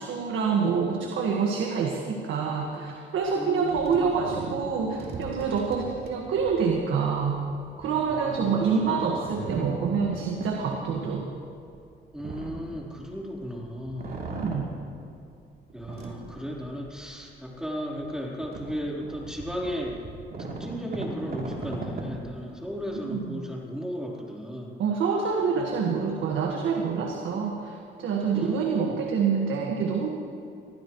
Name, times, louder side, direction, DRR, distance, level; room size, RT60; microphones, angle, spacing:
voice 1, 0.0-7.4 7.8-11.3 14.3-14.7 23.0-23.4 24.8-30.1, right 5 dB, 80° right, 0 dB, 1.7 m, -27 dB
voice 2, 3.3-4.1 8.1-9.0 12.1-14.1 15.7-20.0 20.6-24.7 28.3-29.0, equal, 5° right, -3 dB, 3.9 m, -35 dB
sound 1, 3.7-13.5 13.8-15.3 15.7-17.0 17.5-17.6 18.0-23.1, right 3 dB, 50° right, 3.2 m, -39 dB
24.0 x 15.5 x 3.2 m, 2.5 s
cardioid pair, 90°, 20 cm